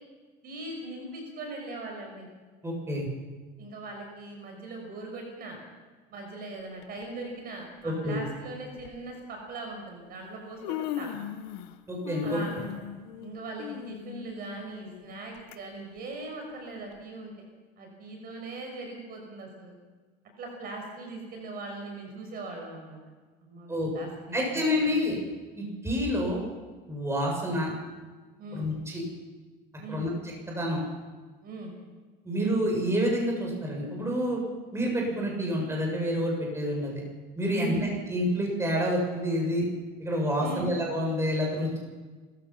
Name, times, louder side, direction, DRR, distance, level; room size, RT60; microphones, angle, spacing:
voice 1, 0.4-2.3 3.6-5.6 6.1-11.2 12.2-12.7 13.2-17.5 17.8-19.7 20.4-23.0 23.4-24.9 28.4-28.7 29.8-30.1 31.4-31.7 37.6-37.9 40.4-40.7, right 2 dB, 45° right, 2 dB, 5.9 m, -40 dB
voice 2, 2.6-3.1 7.8-8.2 11.9-12.4 23.7-23.9 24.3-25.2 25.6-26.4 26.9-27.7 28.5-29.0 29.9-30.1 30.5-30.8 32.2-34.4 34.7-37.0 37.4-39.6 40.0-41.8, equal, 10° right, -1 dB, 7.2 m, -28 dB
Human voice, 6.8-7.0 8.1-8.2 8.8-9.0 10.0-10.1 10.4-11.8 12.0-15.6 16.0-16.1 16.9-17.0, left 11 dB, 85° left, 1.4 m, -38 dB
29.5 x 15.0 x 5.8 m, 1.4 s
supercardioid pair, 115°, 21 cm